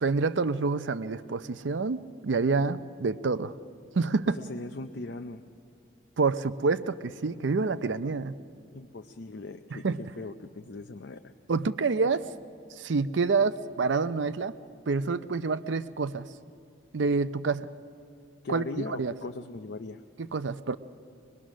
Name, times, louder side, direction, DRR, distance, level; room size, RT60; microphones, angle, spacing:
voice 1, 0.0-3.5 3.9-4.4 6.2-8.3 9.7-10.0 11.5-12.3 12.8-14.5 14.9-16.3 16.9-17.7 18.5-19.1 20.2-20.8, right 4 dB, 80° right, 13 dB, 0.6 m, -27 dB
voice 2, 4.3-5.4 8.7-9.9 10.2-11.2 18.4-20.0, left 3 dB, 70° left, 6 dB, 0.6 m, -39 dB
22.5 x 21.5 x 6.3 m, 2.5 s
head